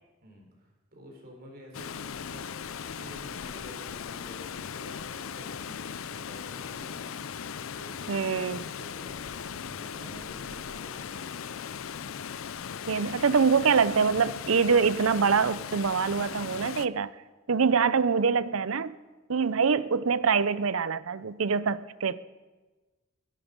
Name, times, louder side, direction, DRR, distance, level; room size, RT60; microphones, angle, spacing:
voice 1, 0.2-2.5 2.9-7.0 7.6-11.4, equal, 45° right, 1 dB, 4.3 m, -50 dB
Water, 1.7-16.9, left 7 dB, 85° left, 0.5 m, -38 dB
voice 2, 8.1-8.6 12.9-17.1 17.5-19.0 19.3-22.2, right 5 dB, 90° right, 17 dB, 0.6 m, -24 dB
21.5 x 11.0 x 5.3 m, 1.2 s
head